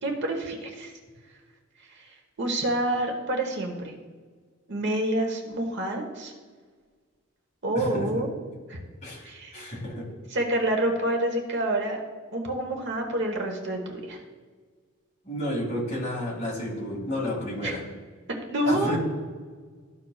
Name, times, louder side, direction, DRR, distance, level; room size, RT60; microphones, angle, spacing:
voice 1, 0.0-0.9 1.9-2.1 2.4-4.0 4.7-6.3 7.6-8.3 8.7-8.8 9.2-9.7 10.3-12.0 12.3-14.2 17.6-17.7 18.5-19.0, right 1 dB, 60° right, 2 dB, 1.1 m, -28 dB
voice 2, 7.7-8.2 9.0-10.1 15.2-17.8 18.6-19.0, left 1 dB, 35° left, -3 dB, 2.3 m, -31 dB
13.5 x 5.6 x 2.4 m, 1.5 s
head